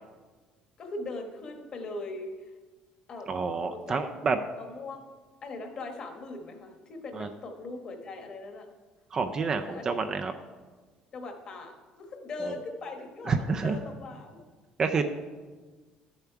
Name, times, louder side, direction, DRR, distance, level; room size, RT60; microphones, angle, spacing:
voice 1, 0.8-2.5 3.1-3.4 3.7-4.0 4.6-5.1 5.4-8.7 9.5-10.0 11.1-14.4 14.9-15.0, left 2 dB, 30° left, 4 dB, 1.2 m, -40 dB
voice 2, 3.3-4.4 7.2-7.3 9.1-10.3 12.5-12.6 13.3-13.8 14.8-15.0, right 5 dB, 25° right, 7 dB, 0.4 m, -28 dB
12.0 x 7.0 x 4.6 m, 1.4 s
cardioid pair, 170°, 3 cm